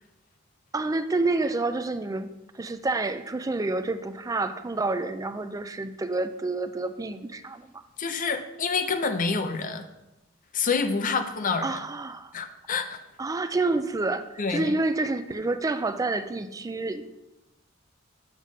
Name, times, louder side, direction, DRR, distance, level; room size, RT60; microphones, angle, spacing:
voice 1, 0.7-7.8 11.6-12.3 13.2-17.0, right 3 dB, 15° right, 10 dB, 0.4 m, -28 dB
voice 2, 8.0-9.9 10.5-11.8 12.3-13.0 14.4-14.7, left 4 dB, 40° left, 8 dB, 0.6 m, -27 dB
7.4 x 3.6 x 6.2 m, 0.97 s
head